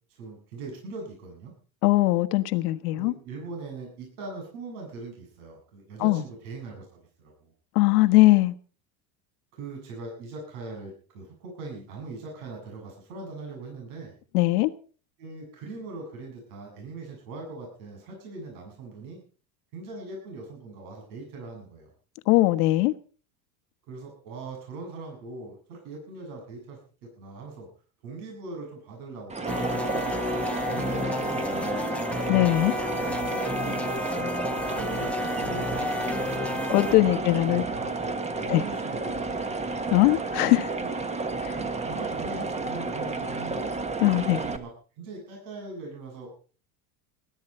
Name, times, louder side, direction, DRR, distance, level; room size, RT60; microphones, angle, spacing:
voice 1, 0.1-1.5 2.9-6.9 7.2-7.5 9.5-14.2 15.2-19.2 19.7-21.9 23.9-27.7 28.0-30.2 30.7-32.6 33.8-34.3 34.7-36.6 36.9-39.6 40.8-41.0 41.5-43.7 44.0-46.3, right 3 dB, 80° right, 7.5 m, -41 dB
voice 2, 1.8-3.1 6.0-6.2 7.7-8.5 14.3-14.7 22.3-22.9 32.3-32.7 36.7-37.6 38.5-38.6 39.9-40.7 41.4-41.5 44.0-44.4, left 18 dB, 80° left, 1.4 m, -20 dB
sound 1, 29.3-44.6, right 3 dB, 15° right, 1.4 m, -31 dB
sound 2, 29.5-37.0, left 2 dB, 5° left, 1.0 m, -32 dB
20.0 x 11.5 x 4.3 m
supercardioid pair, 135°, 44 cm